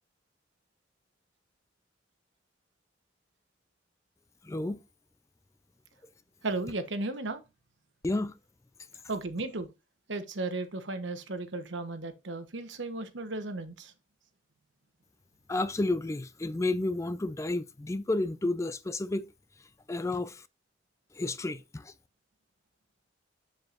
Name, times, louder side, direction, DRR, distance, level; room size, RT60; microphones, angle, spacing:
voice 1, 4.4-4.8 8.0-8.3 15.5-19.3 19.9-20.4 21.2-21.9, left 2 dB, 15° left, 0.3 m, -31 dB
voice 2, 6.4-7.4 9.1-9.7 10.1-13.9, right 2 dB, 75° right, 1.1 m, -35 dB
7.5 x 7.3 x 2.5 m
head